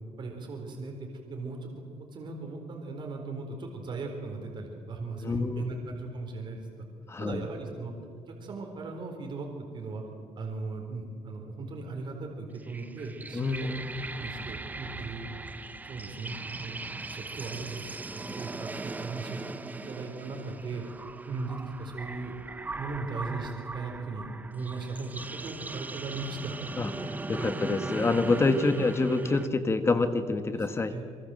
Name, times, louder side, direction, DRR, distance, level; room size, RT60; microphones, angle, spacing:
voice 1, 0.2-1.0 1.3-1.7 2.1-6.9 7.2-7.9 8.3-10.0 10.4-13.7 14.2-15.3 15.8-16.8 17.1-20.8 21.3-22.3 22.8-24.3 24.5-26.6 26.9-27.5 30.6-31.0, right 3 dB, 40° right, 2 dB, 4.2 m, -38 dB
voice 2, 5.2-5.8 7.1-7.4 13.3-14.0 26.8-26.9 27.3-30.9, left 3 dB, 20° left, 10 dB, 1.3 m, -27 dB
sound 1, 12.5-29.5, right 3 dB, 15° right, 0.8 m, -39 dB
26.0 x 23.5 x 7.7 m, 2.3 s
cardioid pair, 160°, 12 cm